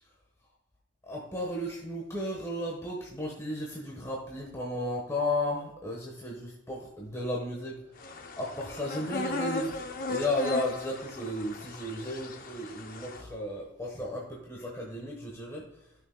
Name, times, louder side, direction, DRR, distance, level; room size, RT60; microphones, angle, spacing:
voice 1, 1.0-8.0 8.4-9.8 10.1-15.9, left 1 dB, 15° left, -2 dB, 1.2 m, -34 dB
sound 1, 8.0-13.2, left 3 dB, 45° left, 0.6 m, -37 dB
14.5 x 6.4 x 2.2 m, 0.82 s
head